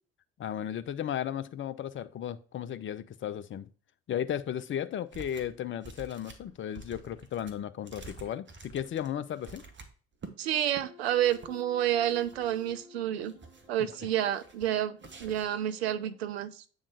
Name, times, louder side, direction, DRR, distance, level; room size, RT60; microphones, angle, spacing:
voice 1, 0.4-3.7 4.1-9.6, left 10 dB, 40° left, 14 dB, 0.7 m, -35 dB
sound 1, 5.1-5.6 5.8-10.3 10.7-10.8 11.2-11.6 12.1-12.8 13.2-13.8 14.3-14.7 15.0-15.6, right 4 dB, 35° right, 1.5 m, -49 dB
voice 2, 10.4-13.3 13.7-16.6, right 11 dB, 75° right, 12 dB, 0.6 m, -29 dB
sound 2, 10.8-16.2, left 3 dB, 15° right, 4.5 m, -54 dB
8.6 x 3.7 x 4.8 m, 0.39 s
figure-of-eight pair, 50°, 31 cm